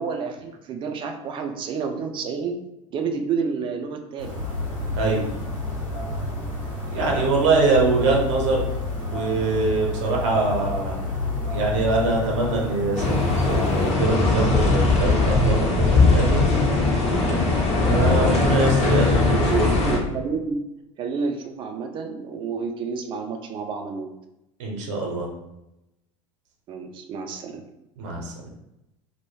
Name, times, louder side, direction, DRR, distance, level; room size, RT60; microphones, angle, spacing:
voice 1, 0.0-2.6 2.9-4.3 5.0-5.2 19.3-20.6 21.0-24.1 26.7-27.6, right 5 dB, 30° right, 5 dB, 0.4 m, -29 dB
sound 1, 4.2-13.9, left 2 dB, 85° left, 0.9 m, -29 dB
voice 2, 6.9-8.7 9.1-11.0 11.5-16.4 17.8-19.7 24.6-25.3 28.0-28.3, right 3 dB, 60° right, -1 dB, 0.7 m, -23 dB
sound 2, 13.0-20.0, left 3 dB, 40° left, 0.9 m, -20 dB
2.1 x 2.1 x 3.1 m, 0.89 s
figure-of-eight pair, 75°, 17 cm